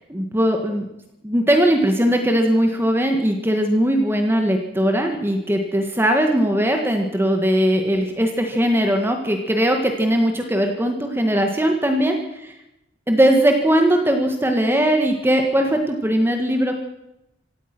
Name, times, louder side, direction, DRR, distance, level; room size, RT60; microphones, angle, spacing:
voice 1, 0.1-0.9 1.2-12.6 13.1-16.7, right 1 dB, 10° right, 4 dB, 1.8 m, -19 dB
25.5 x 17.0 x 6.2 m, 0.89 s
head